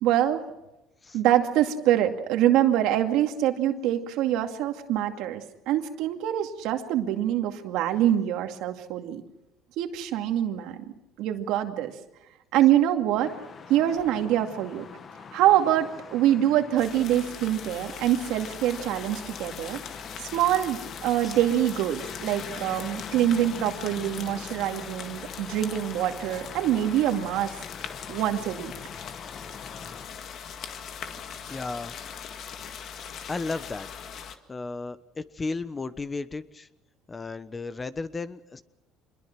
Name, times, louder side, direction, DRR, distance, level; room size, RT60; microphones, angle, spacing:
voice 1, 0.0-0.4 1.1-9.2 9.8-10.8 11.2-11.9 12.5-13.3 13.7-14.8 15.3-19.8 20.2-27.6 28.1-28.7, right 12 dB, 75° right, 5 dB, 2.3 m, -25 dB
sound 1, 13.2-30.0, left 5 dB, 40° left, 1.8 m, -44 dB
sound 2, 16.8-34.4, left 7 dB, 55° left, 1.8 m, -40 dB
voice 2, 31.5-31.9 33.3-33.9 34.5-36.7 37.1-38.6, left 3 dB, 20° left, 13 dB, 1.1 m, -34 dB
25.5 x 21.5 x 6.1 m, 0.93 s
supercardioid pair, 100°, 0 cm